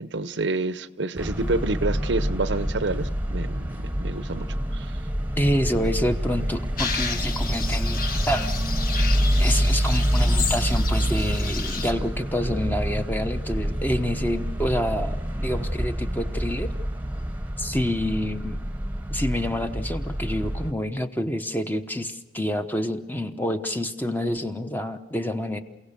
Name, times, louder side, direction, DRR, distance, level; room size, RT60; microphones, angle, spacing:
voice 1, 0.0-4.5 4.7-5.0, right 2 dB, 75° right, 0.8 m, -28 dB
sound 1, 1.2-20.7, equal, 10° right, 1.1 m, -27 dB
voice 2, 5.4-8.0 8.3-8.5 9.4-16.7 17.6-18.6 19.1-25.6, equal, 10° left, 1.0 m, -27 dB
sound 2, 6.8-11.9, left 5 dB, 50° left, 1.9 m, -32 dB
29.0 x 17.0 x 6.8 m
head